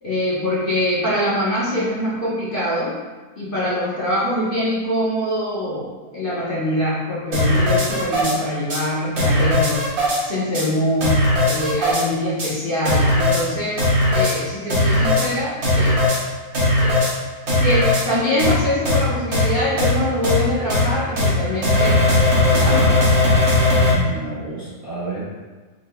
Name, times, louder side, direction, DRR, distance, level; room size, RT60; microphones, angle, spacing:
voice 1, 0.0-2.9 3.4-9.9 10.2-16.0 16.8-17.0 17.6-22.0 22.5-23.0 24.9-25.0, left 1 dB, 45° left, -9 dB, 1.0 m, -24 dB
sound 1, 7.3-8.3 8.7-8.8 9.2-10.2 10.5-10.6 11.0-12.0 12.4-12.5 12.8-13.4 13.8-14.3 14.7-15.3 15.6-16.2 16.5-17.1 17.5-18.0 18.4-18.5 18.8-19.0 19.3-19.4 19.8-19.9 20.2-20.4 20.7-20.8 21.2-21.3 21.6-23.9, left 1 dB, 85° right, 1.7 m, -18 dB
voice 2, 23.9-25.2, right 4 dB, 30° right, -10 dB, 0.9 m, -30 dB
4.7 x 3.5 x 2.2 m, 1.3 s
omnidirectional pair, 1.5 m